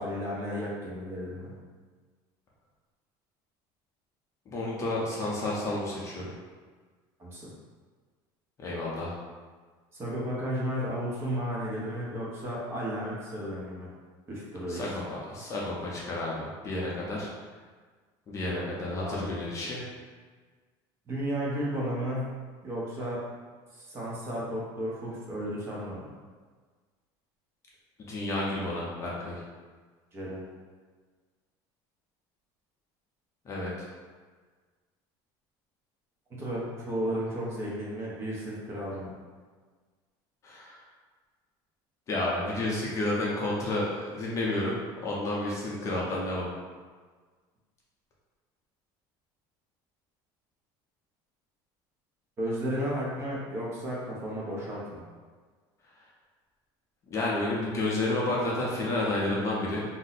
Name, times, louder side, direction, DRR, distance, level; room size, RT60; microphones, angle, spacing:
voice 1, 0.0-1.5 7.2-7.5 9.9-13.9 14.3-15.0 18.5-19.3 21.1-22.3 22.6-23.2 23.7-26.1 30.1-30.4 36.4-39.1 52.4-55.0, equal, 25° right, -5 dB, 0.7 m, -33 dB
voice 2, 4.5-6.3 8.6-9.1 14.7-17.3 18.3-19.9 28.0-29.4 33.4-33.7 40.4-40.8 42.1-44.8 45.0-46.5 57.1-59.8, left 2 dB, 30° left, -4 dB, 0.6 m, -31 dB
2.6 x 2.0 x 3.9 m, 1.5 s
cardioid pair, 160°, 11 cm